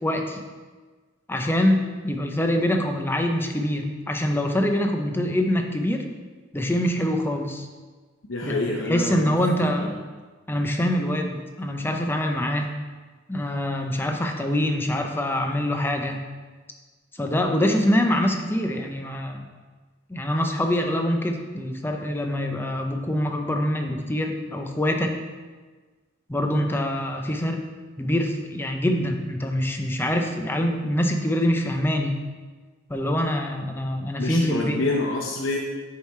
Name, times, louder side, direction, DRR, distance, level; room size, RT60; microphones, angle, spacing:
voice 1, 0.0-0.4 1.3-6.0 6.5-7.7 8.4-8.6 8.9-10.0 10.5-12.7 13.3-16.2 17.2-19.4 20.1-25.1 26.3-27.6 28.0-32.1 32.9-34.8, left 1 dB, 10° left, 4 dB, 0.6 m, -24 dB
voice 2, 8.3-9.3 9.8-10.0 34.2-35.6, left 2 dB, 70° left, 0 dB, 0.7 m, -27 dB
6.8 x 4.8 x 4.3 m, 1.4 s
head